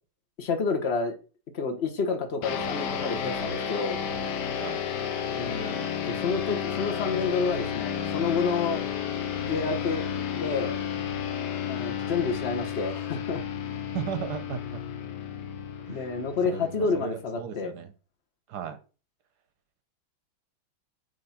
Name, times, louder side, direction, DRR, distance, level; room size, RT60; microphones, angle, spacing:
voice 1, 0.4-1.2 1.5-4.0 5.3-8.8 9.4-10.8 11.7-13.4 15.9-17.7, left 4 dB, 40° left, 5 dB, 1.0 m, -29 dB
sound 1, 2.4-17.2, left 8 dB, 60° left, 1.3 m, -32 dB
voice 2, 13.9-14.8 15.9-17.9 18.5-18.8, right 8 dB, 60° right, 9 dB, 1.2 m, -36 dB
8.0 x 3.4 x 5.7 m, 0.35 s
omnidirectional pair, 2.3 m